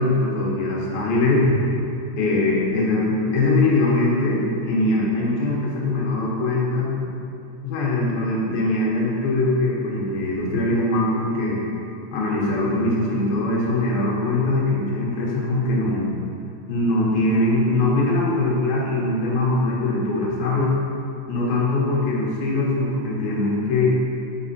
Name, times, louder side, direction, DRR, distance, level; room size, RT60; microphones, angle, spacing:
voice 1, 0.0-1.6 2.2-6.9 7.6-11.6 12.1-16.1 16.7-20.7 21.3-24.0, left 2 dB, 90° left, -4 dB, 3.1 m, -22 dB
6.3 x 6.0 x 4.2 m, 2.8 s
omnidirectional pair, 4.2 m